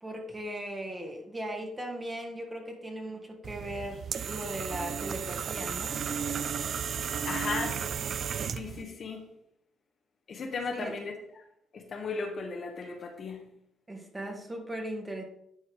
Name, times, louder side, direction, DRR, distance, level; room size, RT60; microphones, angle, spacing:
voice 1, 0.0-6.0 10.7-10.9 13.9-15.2, right 1 dB, 25° right, 1 dB, 2.0 m, -38 dB
sound 1, 3.4-8.8, right 7 dB, 55° right, 0.4 m, -34 dB
voice 2, 7.2-7.8 8.4-9.2 10.3-11.1 11.7-13.5, left 4 dB, 50° left, 3 dB, 1.3 m, -36 dB
10.5 x 4.5 x 3.5 m, 0.75 s
hypercardioid pair, 45°, 0 cm